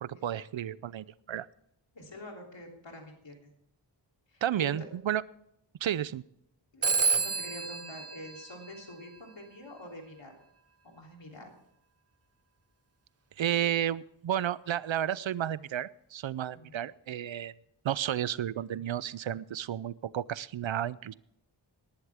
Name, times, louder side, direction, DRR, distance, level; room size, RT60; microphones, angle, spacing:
voice 1, 0.0-1.5 4.4-5.2 5.8-6.2 13.4-17.5 17.8-21.1, right 10 dB, 75° right, 20 dB, 0.5 m, -32 dB
voice 2, 1.9-3.5 4.3-4.7 6.7-10.3 10.8-11.5 16.5-16.7, left 1 dB, 70° left, 1 dB, 3.4 m, -46 dB
Telephone, 6.8-9.3, right 5 dB, 35° right, 0.5 m, -30 dB
19.0 x 11.5 x 3.5 m, 0.75 s
wide cardioid pair, 80°, 46 cm